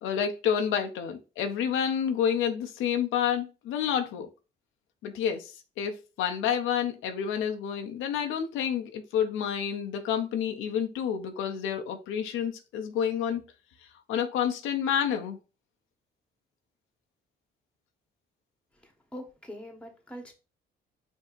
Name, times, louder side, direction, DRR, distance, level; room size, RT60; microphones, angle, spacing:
voice 1, 0.0-4.3 5.0-13.4 14.1-15.4, left 8 dB, 90° left, 0.6 m, -29 dB
voice 2, 18.7-20.3, equal, 5° left, 1.1 m, -44 dB
5.2 x 2.7 x 2.4 m
cardioid pair, 90°, 20 cm